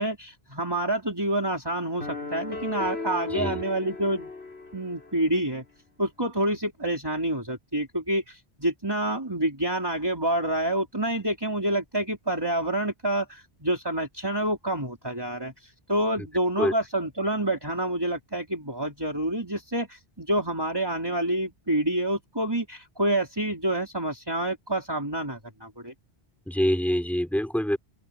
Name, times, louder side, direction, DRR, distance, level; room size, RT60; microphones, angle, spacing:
voice 1, 0.0-4.3 4.7-5.6 6.0-25.9, right 1 dB, 20° right, 4.2 m, -28 dB
sound 1, 2.0-5.2, left 3 dB, 80° left, 4.8 m, -36 dB
voice 2, 26.5-27.8, equal, ahead, 4.8 m, -25 dB
open air
omnidirectional pair, 1.0 m